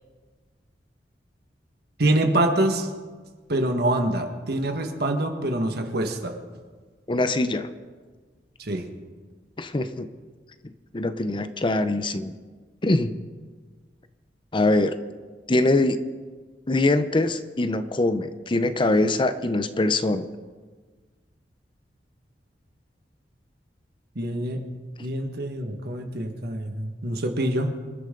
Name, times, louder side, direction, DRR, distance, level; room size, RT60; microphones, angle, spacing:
voice 1, 2.0-2.9 3.5-6.4 8.6-8.9 24.2-24.6 25.0-27.8, right 1 dB, 65° right, 4 dB, 1.7 m, -25 dB
voice 2, 7.1-7.7 9.6-10.1 10.9-12.4 12.8-13.1 14.5-15.0 15.5-16.0 16.7-20.3, left 2 dB, 30° left, 11 dB, 0.7 m, -23 dB
26.5 x 12.0 x 3.9 m, 1.4 s
head